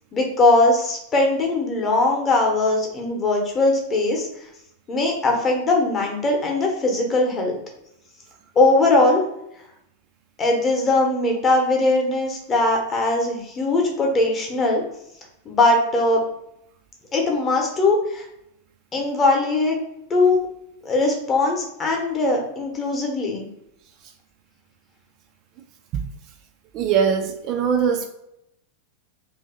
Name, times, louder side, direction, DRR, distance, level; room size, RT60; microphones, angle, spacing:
voice 1, 0.1-4.3 4.9-7.6 8.6-9.2 10.4-14.8 15.5-16.2 17.1-18.2 18.9-19.8 20.1-20.4 20.8-23.5, left 2 dB, 25° left, 0 dB, 0.8 m, -20 dB
voice 2, 26.7-28.1, right 7 dB, 40° right, 5 dB, 0.3 m, -21 dB
2.7 x 2.6 x 3.7 m, 0.80 s
figure-of-eight pair, 90°, 0 cm